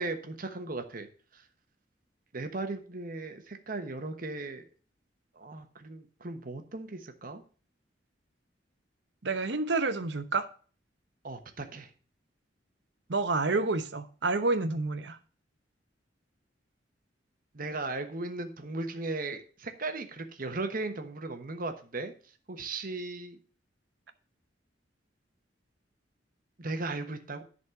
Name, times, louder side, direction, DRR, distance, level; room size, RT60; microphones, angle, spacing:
voice 1, 0.0-1.4 2.3-4.7 5.3-7.4 11.2-11.9 17.5-22.1 22.5-23.4 26.6-27.4, right 3 dB, 50° right, 7 dB, 1.2 m, -37 dB
voice 2, 9.2-10.5 13.1-15.2, right 3 dB, 70° right, 10 dB, 1.0 m, -29 dB
11.0 x 4.3 x 7.0 m, 0.40 s
head